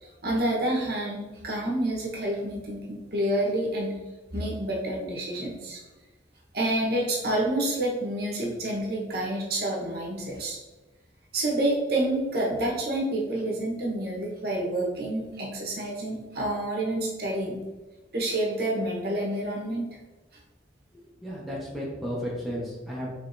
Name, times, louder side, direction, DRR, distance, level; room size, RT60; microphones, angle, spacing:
voice 1, 0.0-4.0 4.3-5.8 6.5-10.6 11.3-17.6 18.1-19.9, right 1 dB, 55° right, -2 dB, 1.0 m, -28 dB
voice 2, 20.9-23.1, equal, ahead, -6 dB, 0.8 m, -34 dB
4.9 x 3.3 x 2.6 m, 1.1 s
head